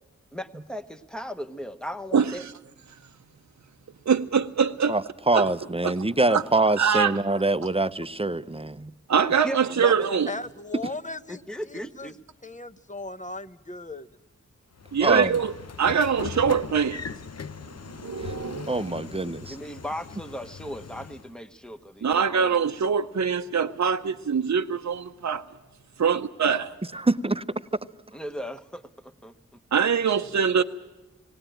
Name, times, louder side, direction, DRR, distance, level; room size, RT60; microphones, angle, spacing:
voice 1, 0.3-2.4 9.4-10.3 11.3-12.2 19.5-22.6 28.1-29.3, equal, 5° left, 1.0 m, -37 dB
voice 2, 2.1-2.5 4.1-4.9 5.3-5.5 5.8-5.9 6.3-6.4 6.8-7.1 9.1-10.3 14.9-15.5 15.8-17.0 18.0-18.7 22.0-25.4 26.0-26.7 29.7-30.6, right 6 dB, 65° right, 0.6 m, -23 dB
voice 3, 4.9-8.9 15.0-15.4 18.2-18.3 18.7-19.6 26.9-27.4, right 2 dB, 20° right, 0.6 m, -25 dB
voice 4, 10.3-11.4 11.7-12.1 12.4-14.1, left 2 dB, 25° left, 0.8 m, -37 dB
Train / Sliding door, 14.8-21.3, left 5 dB, 60° left, 0.6 m, -40 dB
18.5 x 18.5 x 9.0 m
wide cardioid pair, 45°, 30 cm